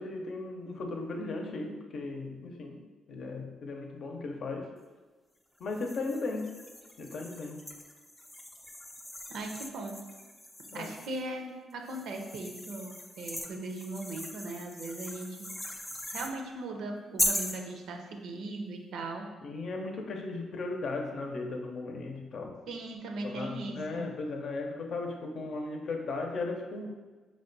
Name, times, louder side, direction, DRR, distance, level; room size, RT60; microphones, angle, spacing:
voice 1, 0.0-2.8 3.1-4.7 5.6-6.5 7.0-7.6 10.7-10.9 19.4-22.5 23.2-26.9, left 3 dB, 60° left, 2 dB, 0.6 m, -36 dB
sound 1, 5.7-11.3 11.9-16.3 17.2-17.6, left 1 dB, 10° left, 0.4 m, -39 dB
voice 2, 9.3-10.0 10.7-15.5 16.1-19.3 22.7-24.1, right 2 dB, 75° right, 3 dB, 0.6 m, -39 dB
4.7 x 2.2 x 3.9 m, 1.3 s
cardioid pair, 90°, 0 cm